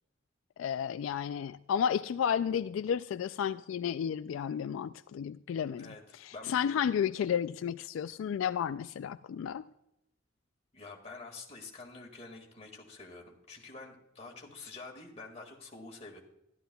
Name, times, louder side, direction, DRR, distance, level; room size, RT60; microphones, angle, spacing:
voice 1, 0.6-9.7, left 8 dB, 90° left, 0.3 m, -32 dB
voice 2, 10.7-16.2, left 3 dB, 35° left, 1.8 m, -47 dB
13.5 x 11.5 x 2.3 m
head